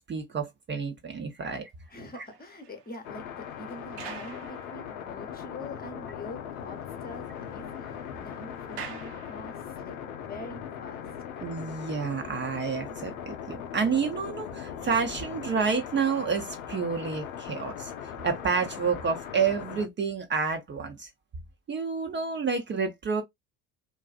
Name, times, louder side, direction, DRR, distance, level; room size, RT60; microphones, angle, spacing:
voice 1, 0.1-1.7 2.1-2.2 11.4-17.9 18.2-21.1 21.7-23.2, right 5 dB, 25° right, 0.6 m, -29 dB
sound 1, 1.8-5.3 5.8-5.9 6.3-6.4 6.7-9.9, right 7 dB, 60° right, 0.8 m, -47 dB
voice 2, 1.9-11.0, left 1 dB, 20° left, 0.9 m, -45 dB
sound 2, 3.0-19.9, left 8 dB, 75° left, 0.6 m, -39 dB
2.5 x 2.3 x 2.4 m
figure-of-eight pair, 60°, 43 cm